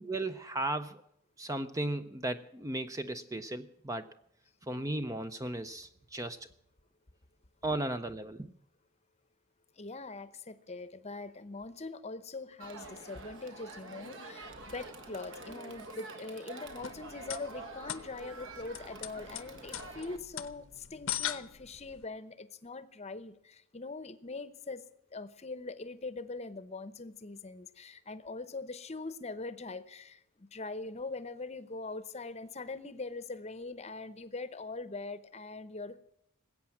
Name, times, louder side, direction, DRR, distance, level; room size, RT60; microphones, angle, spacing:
voice 1, 0.0-1.0 1.4-4.1 4.7-6.4 7.6-8.5, right 2 dB, 15° right, 10 dB, 0.5 m, -35 dB
voice 2, 9.8-24.8 25.1-36.0, left 3 dB, 30° left, 14 dB, 0.8 m, -42 dB
Crowd, 12.6-20.2, right 2 dB, 60° right, 1.7 m, -47 dB
sound 1, 16.7-22.0, left 11 dB, 60° left, 0.8 m, -41 dB
20.0 x 8.6 x 7.3 m, 0.74 s
head